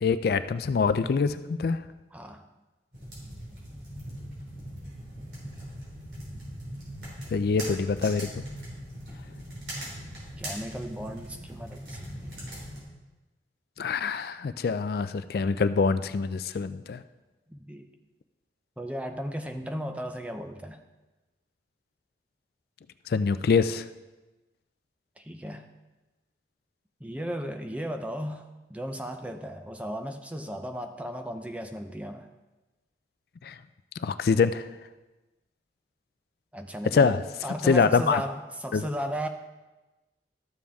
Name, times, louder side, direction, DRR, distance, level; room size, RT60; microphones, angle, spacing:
voice 1, 0.0-1.8 7.3-8.4 13.8-17.0 23.1-23.8 33.4-33.5 34.0-34.7 36.9-37.2 37.6-38.2 38.7-38.8, left 5 dB, 60° left, 12 dB, 0.3 m, -25 dB
voice 2, 2.1-2.5 10.4-12.2 17.5-17.9 18.8-20.8 25.2-25.7 27.0-32.3 36.5-39.3, equal, 10° right, 6 dB, 0.5 m, -35 dB
sound 1, 2.9-12.8, equal, 70° right, 3.8 m, -40 dB
13.0 x 7.2 x 3.5 m, 1.1 s
head